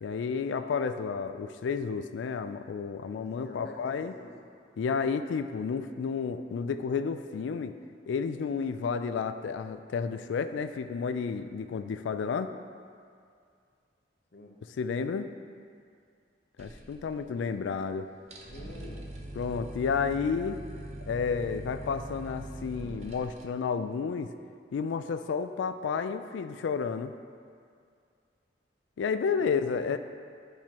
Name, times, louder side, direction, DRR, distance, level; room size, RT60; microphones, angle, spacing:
voice 1, 0.0-4.1 4.8-7.7 8.1-12.5 14.8-15.3 16.6-18.1 19.4-20.6 21.1-24.3 24.7-27.1 29.0-30.0, left 5 dB, 85° left, 10 dB, 0.3 m, -31 dB
voice 2, 3.3-4.3 14.3-14.6 18.5-19.1 29.3-30.0, left 1 dB, 60° left, 0 dB, 0.8 m, -48 dB
sound 1, 16.6-17.6 17.8-17.9 18.2-23.4, right 1 dB, 35° right, 0.6 m, -43 dB
10.0 x 4.5 x 2.9 m, 2.3 s
head